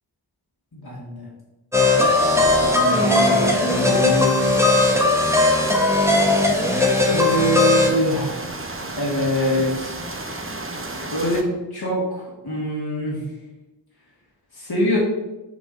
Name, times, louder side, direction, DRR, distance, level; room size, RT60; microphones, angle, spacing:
voice 1, 0.7-1.3 2.3-4.4 7.1-8.4 9.0-10.0 11.1-13.2 14.5-15.0, equal, 60° left, -5 dB, 1.9 m, -24 dB
sound 1, 1.7-7.9, left 2 dB, 5° right, 1.2 m, -18 dB
sound 2, 1.9-11.4, right 2 dB, 30° right, 0.8 m, -33 dB
5.1 x 4.2 x 5.1 m, 1.1 s
wide cardioid pair, 55°, 43 cm